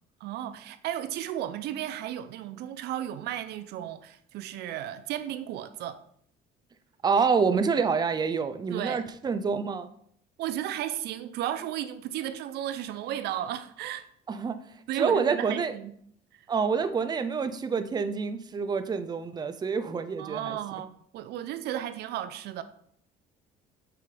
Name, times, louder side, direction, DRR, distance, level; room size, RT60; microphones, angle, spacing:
voice 1, 0.2-6.0 8.7-9.0 10.4-14.1 14.9-15.9 16.3-16.4 20.1-22.6, right 11 dB, 80° right, 0.6 m, -34 dB
voice 2, 7.0-9.9 14.3-14.6 15.0-15.7 16.5-20.6, right 5 dB, 25° right, 0.5 m, -27 dB
7.6 x 5.4 x 3.3 m
cardioid pair, 110°, 17 cm